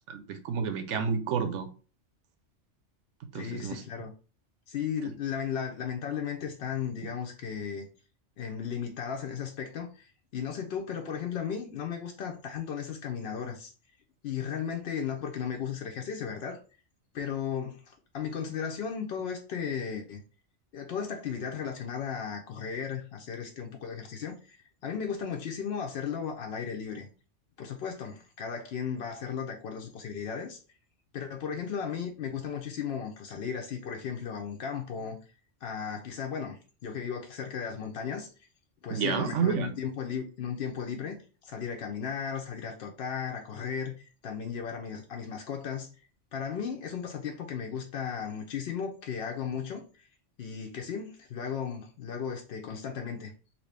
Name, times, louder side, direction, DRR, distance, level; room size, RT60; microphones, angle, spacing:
voice 1, 0.1-1.7 3.3-3.8 38.9-39.7, right 7 dB, 80° right, 0.9 m, -30 dB
voice 2, 3.3-4.1 4.7-7.9 8.4-13.7 14.2-16.6 17.1-20.2 20.7-24.6 24.8-27.1 27.6-30.6 31.1-35.2 35.6-38.3 38.8-45.9 46.3-50.1 50.4-53.3, left 7 dB, 60° left, 0.7 m, -35 dB
3.0 x 2.7 x 3.2 m
omnidirectional pair, 1.2 m